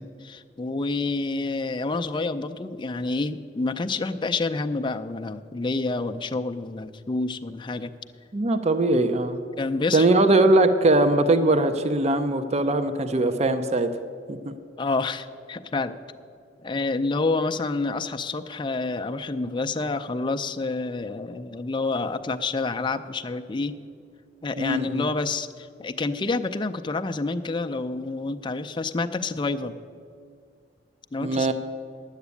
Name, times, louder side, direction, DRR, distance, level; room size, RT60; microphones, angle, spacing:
voice 1, 0.0-8.0 9.6-10.1 14.8-15.9 16.6-23.8 24.4-29.8 31.1-31.5, left 3 dB, 25° left, 7 dB, 0.5 m, -28 dB
voice 2, 8.3-9.4 9.9-13.9 14.3-14.4 24.6-25.1 31.2-31.5, right 2 dB, 35° right, 10 dB, 0.6 m, -21 dB
11.0 x 8.1 x 8.3 m, 2.2 s
head